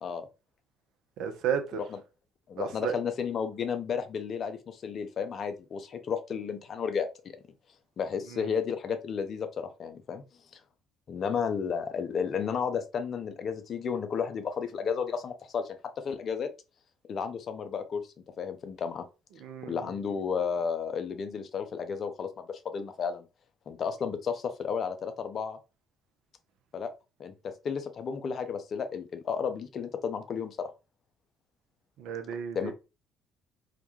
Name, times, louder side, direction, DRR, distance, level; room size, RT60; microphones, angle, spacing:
voice 1, 1.2-1.8 2.6-2.9 8.3-8.4 19.4-19.9 32.0-32.7, right 8 dB, 65° right, 0.4 m, -33 dB
voice 2, 2.5-7.1 8.0-10.2 11.1-15.8 16.0-16.5 17.1-18.0 18.4-19.1 19.6-23.3 23.7-25.6 26.7-26.9 27.2-30.7 32.5-32.7, left 6 dB, 50° left, 0.4 m, -32 dB
2.2 x 2.1 x 2.8 m
hypercardioid pair, 55°, 0 cm